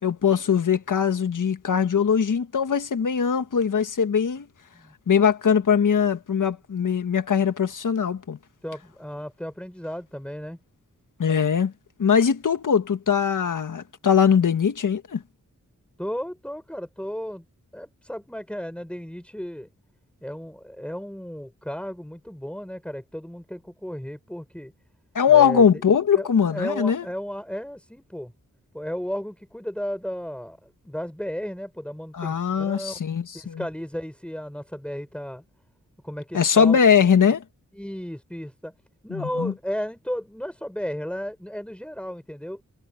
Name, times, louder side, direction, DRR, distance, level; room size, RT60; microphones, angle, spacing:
voice 1, 0.0-4.5 5.1-8.4 11.2-11.7 12.0-15.2 25.1-27.0 32.1-33.6 36.3-37.4 39.1-39.5, left 7 dB, 80° left, 1.6 m, -21 dB
voice 2, 8.6-10.6 16.0-17.4 17.7-19.7 20.2-24.7 25.3-25.8 26.1-28.3 28.7-33.0 33.3-35.4 36.0-36.8 37.8-38.7 39.0-42.6, equal, 5° left, 6.3 m, -34 dB
wide cardioid pair, 80°, 31 cm